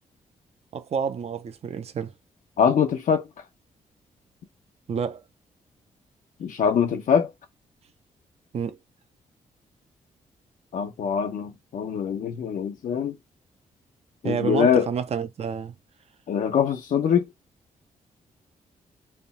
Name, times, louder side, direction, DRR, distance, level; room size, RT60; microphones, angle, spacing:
voice 1, 0.7-2.1 4.9-5.2 8.5-8.8 14.2-15.7, right 7 dB, 50° right, 0.7 m, -29 dB
voice 2, 2.6-3.3 6.4-7.3 10.7-13.1 14.2-14.9 16.3-17.3, left 7 dB, 75° left, 0.9 m, -23 dB
3.5 x 2.3 x 4.1 m
cardioid pair, 105°, 14 cm